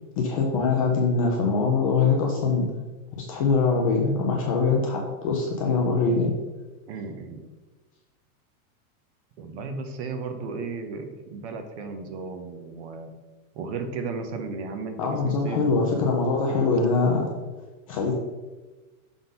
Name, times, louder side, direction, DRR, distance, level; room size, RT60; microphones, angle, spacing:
voice 1, 0.2-2.7 3.2-6.3 15.0-17.3 17.9-18.1, left 4 dB, 25° left, 0 dB, 0.4 m, -23 dB
voice 2, 6.9-7.4 9.4-13.1 13.5-15.7 16.5-16.8, right 4 dB, 50° right, 6 dB, 1.0 m, -34 dB
6.1 x 3.9 x 5.2 m, 1.2 s
supercardioid pair, 175°, 44 cm